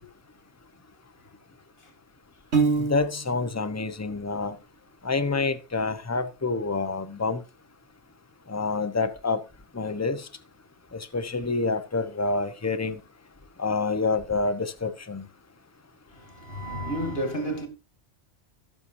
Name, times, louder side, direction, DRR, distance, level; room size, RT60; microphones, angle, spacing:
Piano, 2.5-3.5, right 4 dB, 75° right, 2.6 m, -25 dB
voice 1, 2.8-4.6 5.0-7.4 8.5-9.4 9.7-10.3 10.9-13.0 13.6-15.2, left 3 dB, 15° left, 1.0 m, -27 dB
voice 2, 16.1-17.7, right 1 dB, 60° left, 2.6 m, -31 dB
17.5 x 7.0 x 2.7 m
omnidirectional pair, 1.1 m